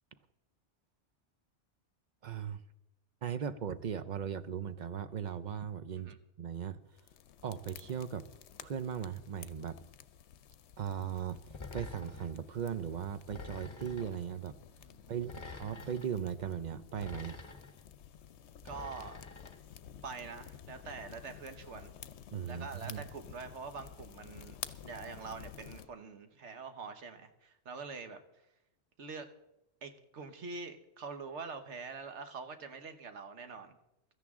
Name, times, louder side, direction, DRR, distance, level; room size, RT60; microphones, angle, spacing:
voice 1, 2.2-2.6 3.2-6.8 7.4-8.2 8.6-9.8 10.8-11.4 11.7-14.6 15.1-17.4 22.3-23.0, right 8 dB, 50° right, 13 dB, 0.6 m, -38 dB
sound 1, 6.9-25.9, left 9 dB, 75° left, 0.9 m, -52 dB
sound 2, 11.5-12.4 13.3-14.2 15.2-16.1 16.9-17.8 18.6-19.6, left 3 dB, 25° left, 1.0 m, -47 dB
voice 2, 14.8-15.2 18.6-19.2 20.0-21.9 22.5-28.2 29.0-29.3 29.8-33.8, right 4 dB, 80° right, 8 dB, 1.4 m, -45 dB
16.5 x 13.5 x 3.7 m, 0.91 s
omnidirectional pair, 1.2 m